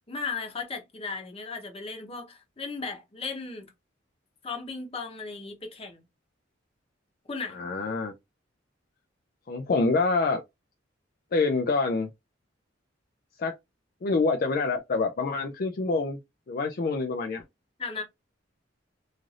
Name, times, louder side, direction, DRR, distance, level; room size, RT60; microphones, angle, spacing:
voice 1, 0.1-3.7 4.4-6.0 7.3-7.6 17.8-18.0, left 4 dB, 30° left, 0.8 m, -36 dB
voice 2, 7.5-8.1 9.5-10.4 11.3-12.1 13.4-13.5 14.0-16.2 16.5-17.4, left 3 dB, 50° left, 0.4 m, -26 dB
3.2 x 2.5 x 2.4 m
head